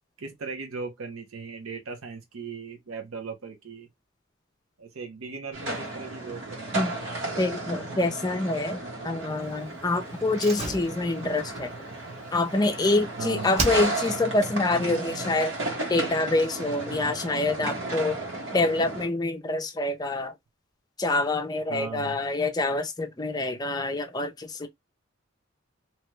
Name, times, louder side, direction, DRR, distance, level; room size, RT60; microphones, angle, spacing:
voice 1, 0.2-3.9 4.8-7.0 13.2-13.6 21.7-22.2, right 5 dB, 85° right, 0.7 m, -38 dB
sound 1, 5.5-19.1, right 2 dB, 65° right, 1.2 m, -34 dB
voice 2, 7.4-11.7 12.3-15.5 15.9-18.2 18.5-20.3 21.0-24.7, left 2 dB, 20° left, 0.5 m, -26 dB
Slam, 10.3-13.1 13.5-14.3 14.6-14.7, right 2 dB, 30° right, 0.8 m, -34 dB
2.9 x 2.2 x 3.0 m
head